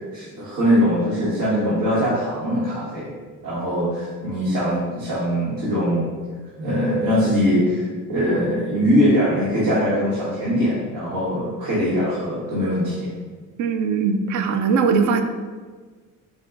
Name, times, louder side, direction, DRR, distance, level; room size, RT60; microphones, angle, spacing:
voice 1, 0.1-3.1 3.4-6.1 6.6-13.1, equal, 90° right, -10 dB, 1.4 m, -21 dB
voice 2, 13.6-15.2, right 5 dB, 65° right, 7 dB, 0.5 m, -20 dB
5.6 x 2.3 x 3.7 m, 1.5 s
cardioid pair, 165°, 32 cm